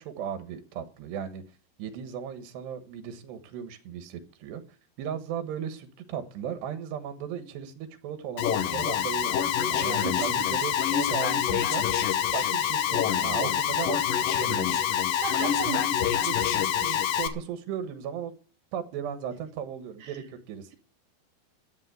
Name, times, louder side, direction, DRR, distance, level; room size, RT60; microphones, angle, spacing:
voice 1, 0.0-1.4 1.8-4.6 5.0-11.8 12.3-14.8 15.4-18.3 18.7-20.7, right 8 dB, 85° right, 3.6 m, -36 dB
Alarm, 8.4-17.3, left 9 dB, 70° left, 2.4 m, -26 dB
voice 2, 10.0-10.5 15.2-15.9 16.3-16.5 20.0-20.1, right 10 dB, 55° right, 3.2 m, -35 dB
13.0 x 8.2 x 9.4 m
omnidirectional pair, 4.7 m